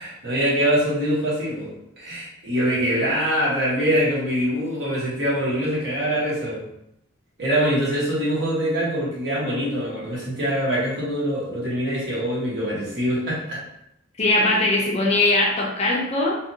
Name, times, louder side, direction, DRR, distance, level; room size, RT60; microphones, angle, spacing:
voice 1, 0.0-6.6 7.4-13.6, equal, 55° right, -7 dB, 1.2 m, -24 dB
voice 2, 14.2-16.4, left 2 dB, 30° left, -2 dB, 0.4 m, -20 dB
2.8 x 2.5 x 2.7 m, 0.79 s
head